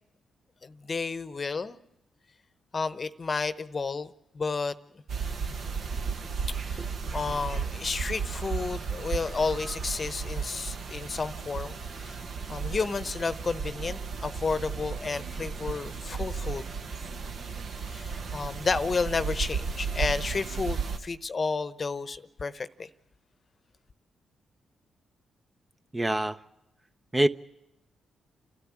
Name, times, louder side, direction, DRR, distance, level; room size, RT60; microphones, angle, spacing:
voice 1, 0.6-1.8 2.7-4.8 6.6-6.8 7.1-12.2 12.5-16.6 17.9-22.9, left 4 dB, 45° left, 0.9 m, -31 dB
sound 1, 5.1-21.0, right 5 dB, 65° right, 1.3 m, -34 dB
voice 2, 25.9-26.4 27.1-27.3, right 1 dB, 20° right, 0.8 m, -24 dB
29.0 x 13.0 x 8.6 m
supercardioid pair, 50°, 0 cm